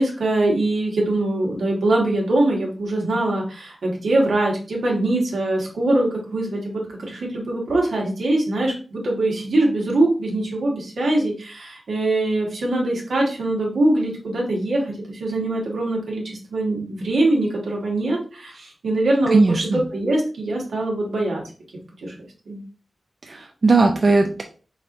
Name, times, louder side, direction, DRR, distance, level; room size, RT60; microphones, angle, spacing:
voice 1, 0.0-21.4 22.0-22.1 22.5-22.6, right 2 dB, 85° right, -1 dB, 1.5 m, -22 dB
voice 2, 19.3-19.8 23.3-24.4, right 3 dB, 50° right, 3 dB, 0.4 m, -18 dB
4.3 x 3.9 x 2.5 m, 0.38 s
wide cardioid pair, 90°, 0 cm